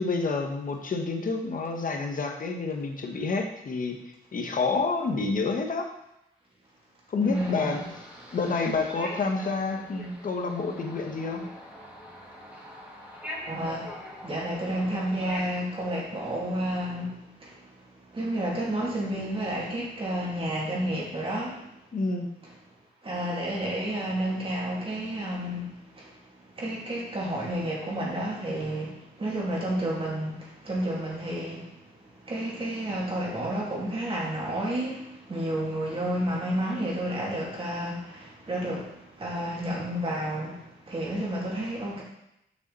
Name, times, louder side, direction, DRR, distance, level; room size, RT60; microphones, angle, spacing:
voice 1, 0.0-5.9 7.1-7.8 8.3-11.5 21.9-22.3, left 4 dB, 45° left, 3 dB, 1.2 m, -29 dB
voice 2, 7.2-7.8 13.5-13.9 14.2-17.6 18.1-21.6 23.0-26.1 26.6-31.7 32.2-42.0, right 1 dB, 30° right, -4 dB, 2.7 m, -31 dB
sound 1, 7.3-15.4, left 1 dB, 10° right, 2.7 m, -43 dB
6.8 x 5.8 x 4.1 m, 0.83 s
cardioid pair, 105°, 19 cm